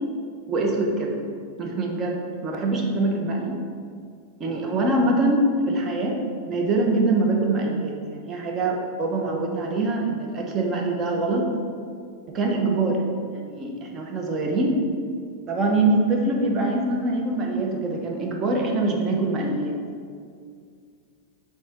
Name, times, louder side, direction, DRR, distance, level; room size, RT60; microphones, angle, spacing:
voice 1, 0.5-1.2 1.6-3.6 4.4-6.2 6.4-11.5 12.3-13.0 13.3-14.8 15.5-19.8, right 2 dB, 30° right, 1 dB, 1.2 m, -24 dB
6.4 x 4.3 x 4.6 m, 2.2 s
hypercardioid pair, 100°, 0 cm